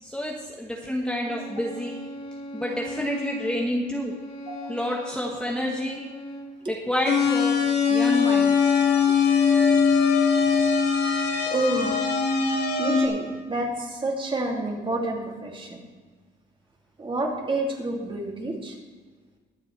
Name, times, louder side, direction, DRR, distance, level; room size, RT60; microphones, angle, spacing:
voice 1, 0.0-1.9 2.5-4.1 4.7-6.1 6.7-7.6 7.9-8.8, equal, 5° left, -1 dB, 1.3 m, -29 dB
Bowed string instrument, 1.2-6.6, equal, 35° left, 2.5 m, -39 dB
sound 1, 7.0-13.1, left 6 dB, 65° left, 2.6 m, -21 dB
voice 2, 9.5-9.8 11.0-11.1 11.5-12.0 12.8-15.8 17.0-18.8, right 2 dB, 25° right, 0 dB, 2.6 m, -29 dB
22.0 x 7.7 x 3.3 m, 1.4 s
cardioid pair, 115°, 19 cm